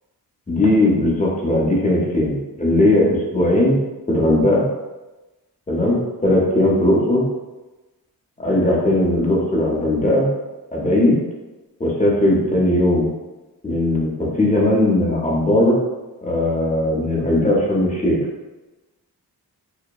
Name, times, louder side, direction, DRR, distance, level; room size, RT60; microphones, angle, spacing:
voice 1, 0.5-3.8 4.1-4.6 5.7-7.2 8.4-10.3 10.7-11.2 11.8-13.1 13.6-15.8 16.2-18.2, left 1 dB, 20° left, -3 dB, 0.7 m, -18 dB
2.8 x 2.1 x 2.3 m, 1.1 s
cardioid pair, 60°, 39 cm